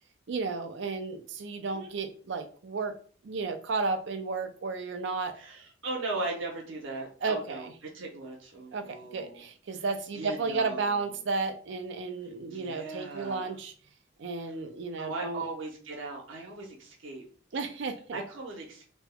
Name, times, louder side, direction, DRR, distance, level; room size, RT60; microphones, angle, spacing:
voice 1, 0.3-2.9 3.2-5.3 7.2-7.7 8.7-13.7 14.2-15.4 17.5-18.2, right 4 dB, 60° right, 8 dB, 0.4 m, -33 dB
voice 2, 5.3-7.7 7.9-9.5 9.7-9.8 10.1-11.1 12.5-13.5 15.0-17.2 18.1-18.8, right 3 dB, 80° right, 0 dB, 1.0 m, -38 dB
3.5 x 3.0 x 2.2 m, 0.43 s
head